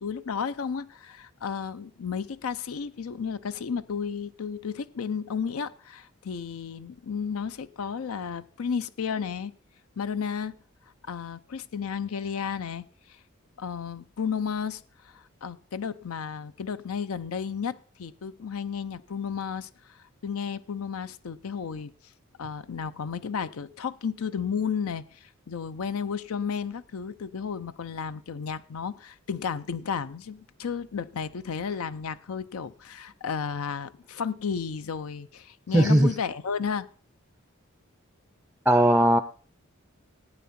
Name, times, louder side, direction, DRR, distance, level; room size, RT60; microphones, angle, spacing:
voice 1, 0.0-9.5 10.0-10.6 11.1-12.9 13.6-21.9 22.4-36.9, left 6 dB, 80° left, 0.5 m, -33 dB
voice 2, 35.7-36.1 38.7-39.2, right 1 dB, 5° right, 0.5 m, -18 dB
16.0 x 9.4 x 4.2 m
head